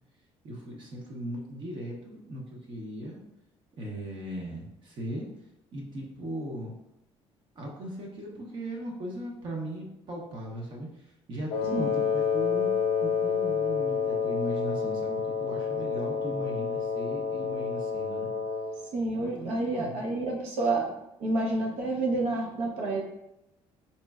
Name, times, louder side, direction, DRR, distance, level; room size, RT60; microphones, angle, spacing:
voice 1, 0.4-3.2 3.8-5.3 5.7-6.7 7.5-12.7 13.0-18.3 19.2-20.1, right 1 dB, 45° right, -2 dB, 0.7 m, -38 dB
Wind instrument woodwind instrument, 11.5-18.8, left 6 dB, 60° left, 0.5 m, -29 dB
voice 2, 18.9-20.9 21.2-23.0, right 2 dB, 85° right, -1 dB, 0.9 m, -29 dB
4.2 x 3.1 x 2.3 m, 0.85 s
cardioid pair, 135°, 11 cm